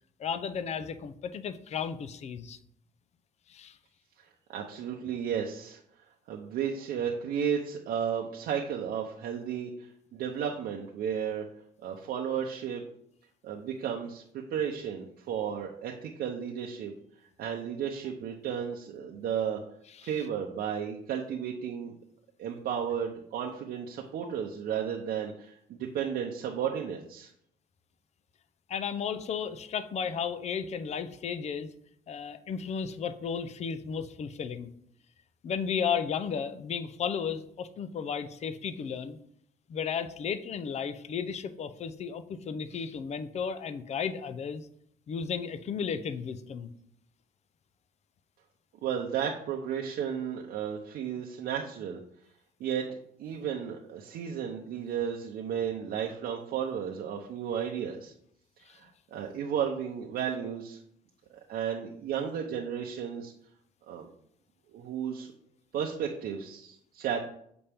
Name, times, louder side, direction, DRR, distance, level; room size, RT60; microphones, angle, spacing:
voice 1, 0.2-2.6 3.5-3.8 28.7-31.7 32.1-34.7 35.4-39.2 39.7-44.6 45.1-46.7 58.7-58.8, left 7 dB, 40° left, 12 dB, 0.5 m, -34 dB
voice 2, 4.2-5.8 6.3-11.4 11.8-12.8 13.4-16.9 17.4-19.6 20.0-21.9 22.4-27.3 48.8-52.0 52.6-52.9 53.2-58.1 58.6-60.8 61.5-63.3 63.9-64.1 64.7-65.3 65.7-67.2, right 8 dB, 65° right, 0 dB, 0.7 m, -33 dB
7.0 x 4.2 x 3.5 m, 0.69 s
cardioid pair, 110°, 17 cm